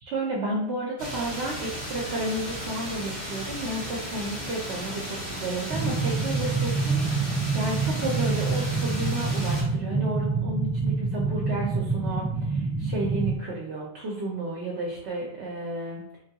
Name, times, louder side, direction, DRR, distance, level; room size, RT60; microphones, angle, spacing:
voice 1, 0.1-16.0, right 2 dB, 70° right, -3 dB, 0.9 m, -32 dB
sound 1, 1.0-9.6, equal, 30° left, 1.2 m, -35 dB
sound 2, 5.7-13.4, right 4 dB, 15° right, 1.3 m, -27 dB
3.7 x 2.2 x 2.7 m, 0.78 s
omnidirectional pair, 1.2 m